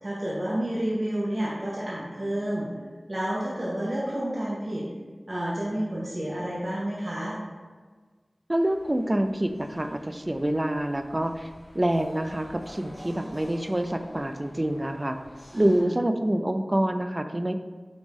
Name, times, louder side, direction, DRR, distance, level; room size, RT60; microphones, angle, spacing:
voice 1, 0.0-2.7 3.1-4.9 5.3-7.4 15.5-15.9, right 1 dB, 50° right, -7 dB, 0.9 m, -30 dB
sound 1, 8.5-15.8, equal, 45° left, 1.4 m, -49 dB
voice 2, 8.5-11.5 11.7-15.2 15.5-17.6, right 1 dB, 30° right, 7 dB, 0.3 m, -26 dB
5.2 x 3.3 x 3.1 m, 1.4 s
wide cardioid pair, 50°, 0 cm